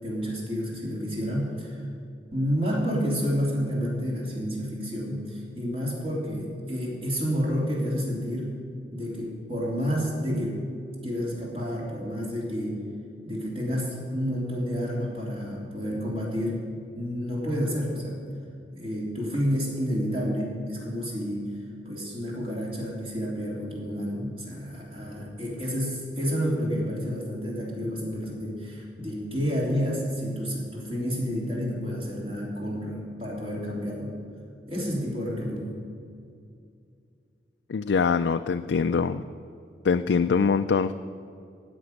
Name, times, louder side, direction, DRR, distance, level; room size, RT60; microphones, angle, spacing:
voice 1, 0.0-1.8 2.3-8.5 8.9-10.6 11.0-12.8 13.2-16.6 16.9-18.2 18.7-21.5 21.8-34.1 34.7-35.6, equal, 30° right, -4 dB, 3.3 m, -30 dB
voice 2, 37.7-39.2 39.8-40.9, left 5 dB, 85° left, 8 dB, 0.4 m, -23 dB
16.0 x 6.1 x 9.5 m, 2.4 s
head